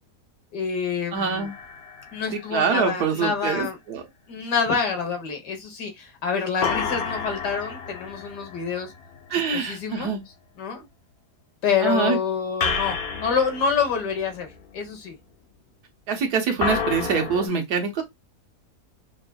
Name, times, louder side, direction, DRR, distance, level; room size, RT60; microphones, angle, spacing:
voice 1, 0.5-1.5 2.1-3.8 4.3-8.9 9.3-10.1 10.6-10.9 11.6-14.5 14.7-15.2, left 6 dB, 85° left, 1.8 m, -27 dB
sound 1, 1.1-2.9 6.6-9.9 12.6-14.8 16.6-17.5, left 5 dB, 55° left, 0.7 m, -31 dB
voice 2, 1.1-1.5 2.5-4.0 9.3-10.2 11.8-12.2 16.1-18.0, right 6 dB, 70° right, 1.5 m, -24 dB
5.8 x 2.4 x 2.3 m
omnidirectional pair, 1.8 m